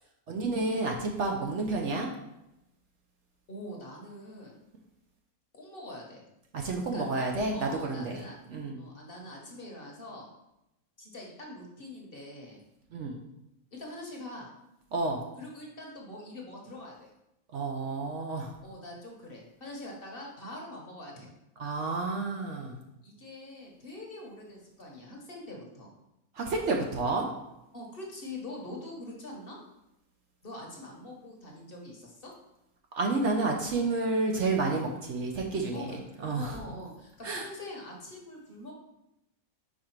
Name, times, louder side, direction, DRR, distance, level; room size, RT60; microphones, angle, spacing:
voice 1, 0.3-2.1 6.5-8.8 12.9-13.2 14.9-15.3 17.5-18.5 21.6-22.8 26.4-27.3 32.9-36.6 37.2-37.5, right 3 dB, 60° right, 1 dB, 0.9 m, -30 dB
voice 2, 3.5-4.6 5.5-6.2 6.9-7.1 7.5-8.4 8.8-10.3 11.0-12.6 13.7-14.5 15.4-17.1 18.6-21.3 23.0-25.9 27.7-29.6 30.4-32.3 34.8-35.0 35.7-36.0 36.4-38.7, left 1 dB, 40° left, -1 dB, 1.1 m, -44 dB
4.8 x 4.8 x 4.5 m, 0.88 s
omnidirectional pair, 1.6 m